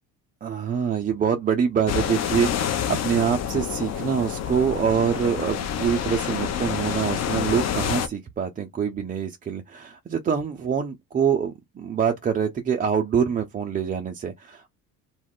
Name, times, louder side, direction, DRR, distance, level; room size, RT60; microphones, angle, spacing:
voice 1, 0.4-14.7, right 7 dB, 20° right, 0.4 m, -25 dB
sound 1, 1.9-8.1, left 8 dB, 35° left, 0.6 m, -28 dB
2.3 x 2.1 x 3.5 m
hypercardioid pair, 65°, 43 cm